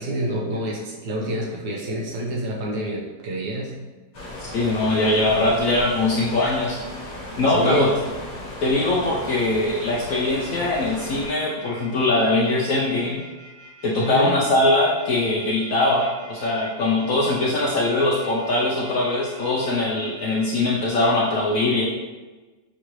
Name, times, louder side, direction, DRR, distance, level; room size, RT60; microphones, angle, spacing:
voice 1, 0.0-3.8 7.5-7.9 14.0-14.3, right 1 dB, 80° right, -2 dB, 1.5 m, -27 dB
sound 1, 4.1-11.3, left 1 dB, 55° left, 1.4 m, -36 dB
voice 2, 4.5-6.8 7.4-7.9 8.6-13.2 13.8-21.8, left 2 dB, 70° left, -4 dB, 0.8 m, -21 dB
sound 2, 10.4-20.5, right 1 dB, 60° right, 2.2 m, -46 dB
6.1 x 2.5 x 3.0 m, 1.3 s
omnidirectional pair, 1.9 m